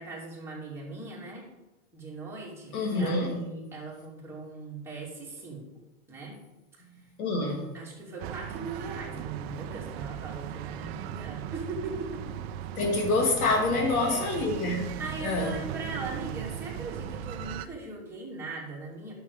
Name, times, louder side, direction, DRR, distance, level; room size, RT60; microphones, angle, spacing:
voice 1, 0.0-1.4 1.9-5.7 6.1-6.4 7.7-12.3 13.8-14.2 15.0-19.1, right 3 dB, 5° right, -5 dB, 2.6 m, -39 dB
voice 2, 2.7-3.3 7.2-7.7 12.8-14.9 15.2-15.6, left 2 dB, 85° left, 1 dB, 2.4 m, -26 dB
sound 1, 8.2-17.7, right 10 dB, 45° right, 0.6 m, -38 dB
9.7 x 7.0 x 4.9 m, 1.0 s
supercardioid pair, 155°, 42 cm